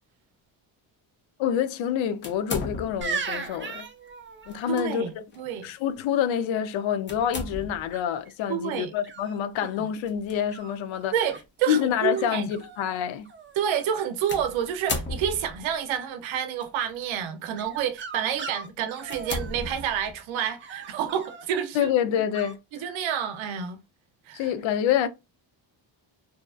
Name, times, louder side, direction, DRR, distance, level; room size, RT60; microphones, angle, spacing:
voice 1, 1.4-3.9 4.5-5.0 5.6-11.1 11.7-13.3 21.7-22.6 24.3-25.1, left 9 dB, 80° left, 0.5 m, -27 dB
sound 1, 2.2-3.2 4.5-4.9 5.3-5.4 7.1-8.0 10.0-10.3 11.2-11.3 14.3-15.7 16.6-17.0 17.6-17.8 18.4-18.5 19.1-20.3, left 3 dB, 25° left, 0.5 m, -35 dB
sound 2, 3.0-4.8 7.9-8.3 9.0-9.9 10.5-11.4 12.1-12.2 12.5-13.0 13.2-13.9 17.5-20.1 20.6-21.5 22.3-22.5, right 5 dB, 30° right, 0.4 m, -38 dB
voice 2, 4.7-5.7 8.5-8.9 9.8-9.9 11.1-12.5 13.6-21.9 22.7-23.8 24.3-24.5, right 9 dB, 90° right, 0.6 m, -29 dB
2.7 x 2.3 x 2.2 m
cardioid pair, 140°, 45 cm